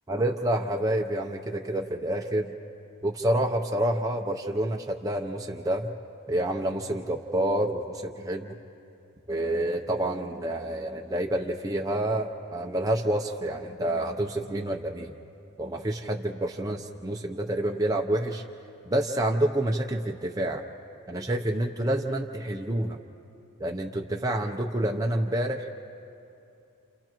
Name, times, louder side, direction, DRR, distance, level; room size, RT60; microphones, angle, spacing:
voice 1, 0.1-2.5 3.0-5.9 6.3-8.6 9.3-15.1 15.6-18.4 18.9-20.6 21.1-23.0 23.6-25.7, right 1 dB, 15° right, 1 dB, 0.6 m, -28 dB
29.5 x 29.5 x 3.0 m, 2.7 s
head